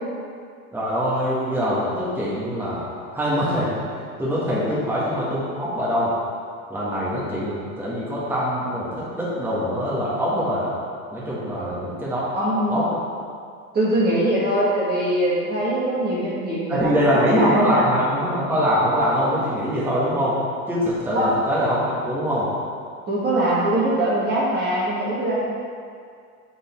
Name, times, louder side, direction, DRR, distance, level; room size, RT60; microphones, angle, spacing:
voice 1, 0.7-2.9 3.1-6.1 6.7-10.7 11.1-12.2 12.7-13.0 16.7-20.4 20.7-22.5, equal, 5° right, -9 dB, 1.5 m, -23 dB
voice 2, 11.6-11.9 12.3-12.8 13.7-17.1 17.4-17.8 21.1-21.3 23.1-25.4, right 1 dB, 25° right, -8 dB, 1.5 m, -22 dB
6.3 x 4.2 x 4.3 m, 2.2 s
supercardioid pair, 125°, 44 cm